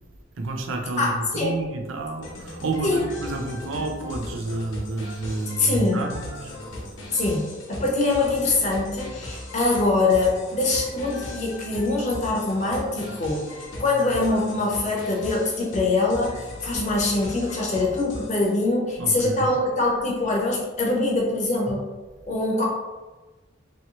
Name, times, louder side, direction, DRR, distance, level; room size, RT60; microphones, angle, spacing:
voice 1, 0.4-6.8 19.0-19.5, right 2 dB, 80° right, 4 dB, 0.5 m, -30 dB
voice 2, 1.0-1.6 2.8-3.1 5.6-6.0 7.1-7.4 7.7-13.4 13.8-21.9 22.2-22.6, left 2 dB, 35° left, -2 dB, 0.7 m, -23 dB
sound 1, 2.2-18.5, left 1 dB, 75° left, 0.8 m, -38 dB
2.9 x 2.8 x 2.9 m, 1.2 s
head